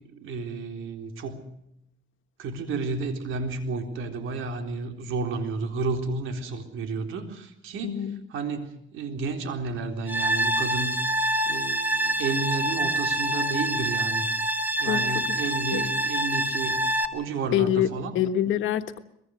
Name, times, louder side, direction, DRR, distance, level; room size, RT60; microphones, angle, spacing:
voice 1, 0.1-1.5 2.4-8.1 8.3-11.0 11.5-14.3 14.8-16.8 17.1-18.1, right 3 dB, 85° right, 6 dB, 3.9 m, -31 dB
voice 2, 7.8-8.2 14.8-15.0 15.7-15.9 17.5-19.0, left 10 dB, 85° left, 9 dB, 1.5 m, -25 dB
sound 1, 10.1-17.1, right 1 dB, 10° right, 2.3 m, -26 dB
23.0 x 22.0 x 6.4 m, 0.77 s
cardioid pair, 90°, 20 cm